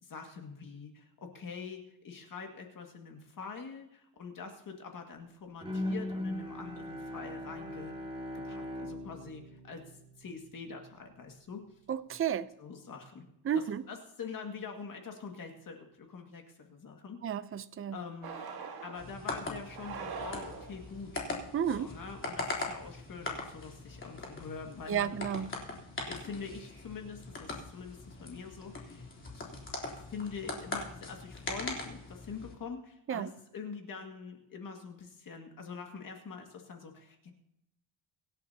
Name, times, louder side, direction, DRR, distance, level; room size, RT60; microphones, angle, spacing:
voice 1, 0.0-8.0 8.3-9.8 10.2-11.6 12.6-13.2 13.9-17.2 17.9-18.4 18.8-21.1 21.7-25.2 26.1-29.0 29.3-29.5 29.9-37.3, left 5 dB, 45° left, 2 dB, 2.1 m, -44 dB
Bowed string instrument, 5.6-10.7, left 1 dB, 10° right, 2.3 m, -39 dB
voice 2, 11.9-12.5 13.4-13.8 17.2-18.0 21.5-21.9 24.9-25.5 33.1-33.3, right 8 dB, 30° right, 13 dB, 0.6 m, -32 dB
sound 1, 18.2-19.1 19.7-20.9, right 5 dB, 55° right, 1.9 m, -42 dB
sound 2, 19.0-32.5, left 2 dB, 25° left, 3.5 m, -41 dB
24.5 x 11.5 x 2.9 m, 0.81 s
cardioid pair, 145°, 46 cm